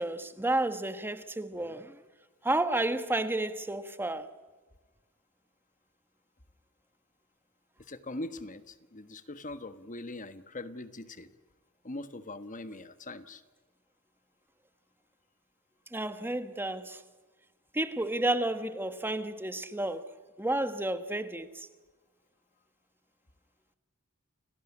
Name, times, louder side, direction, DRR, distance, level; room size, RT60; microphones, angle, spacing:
voice 1, 0.0-2.0 2.4-4.3 15.9-17.0 17.7-21.7, right 2 dB, 10° right, 1.3 m, -31 dB
voice 2, 7.8-11.3 11.8-13.4, left 2 dB, 35° left, 1.4 m, -41 dB
30.0 x 18.0 x 9.8 m
head